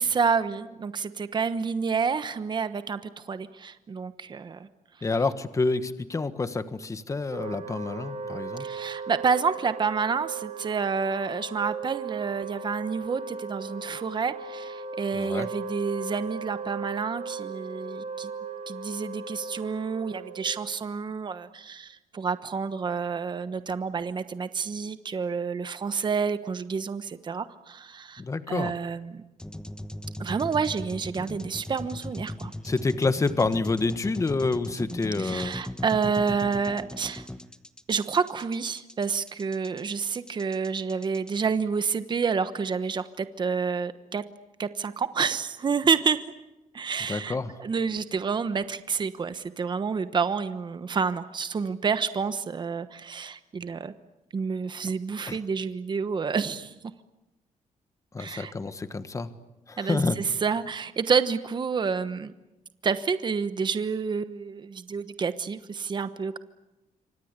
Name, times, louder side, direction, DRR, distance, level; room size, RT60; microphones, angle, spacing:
voice 1, 0.0-4.7 8.6-18.3 18.7-28.2 28.5-29.2 30.2-32.5 35.2-37.3 37.9-44.2 44.6-46.3 46.7-53.9 54.3-56.7 58.2-58.5 59.8-62.3 62.8-66.4, right 5 dB, 35° right, 12 dB, 1.1 m, -29 dB
voice 2, 5.0-8.6 15.1-15.5 28.2-28.7 32.6-35.5 47.1-47.5 55.3-55.4 58.1-59.3 59.7-60.2, left 3 dB, 25° left, 11 dB, 1.4 m, -28 dB
Wind instrument woodwind instrument, 7.3-20.7, right 4 dB, 50° right, 2.9 m, -37 dB
sound 1, 29.4-41.3, left 1 dB, 5° left, 1.1 m, -38 dB
27.5 x 25.5 x 8.2 m, 1.0 s
cardioid pair, 130°, 14 cm